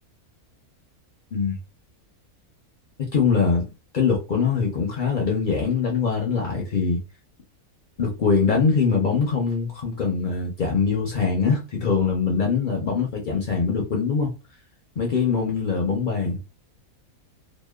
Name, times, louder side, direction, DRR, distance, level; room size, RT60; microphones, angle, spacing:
voice 1, 3.0-3.7 3.9-7.0 8.0-14.3 15.0-16.4, left 5 dB, 65° left, 0.5 m, -23 dB
2.9 x 2.1 x 2.2 m
omnidirectional pair, 1.6 m